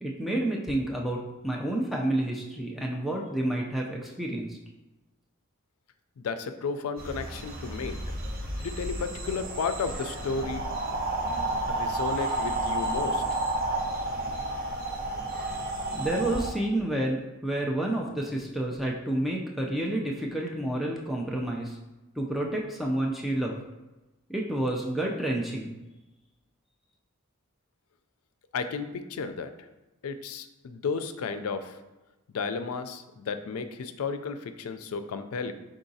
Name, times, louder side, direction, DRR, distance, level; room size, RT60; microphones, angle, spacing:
voice 1, 0.0-4.6 15.9-21.8 22.2-23.6 24.3-25.7, right 1 dB, ahead, -2 dB, 0.4 m, -29 dB
voice 2, 6.2-8.0 8.6-10.7 11.7-13.4 28.5-29.7 30.0-31.8 32.3-35.5, left 5 dB, 85° left, 9 dB, 0.4 m, -33 dB
sound 1, 7.0-16.5, right 2 dB, 45° right, 0.8 m, -31 dB
4.7 x 3.8 x 2.7 m, 1.1 s
head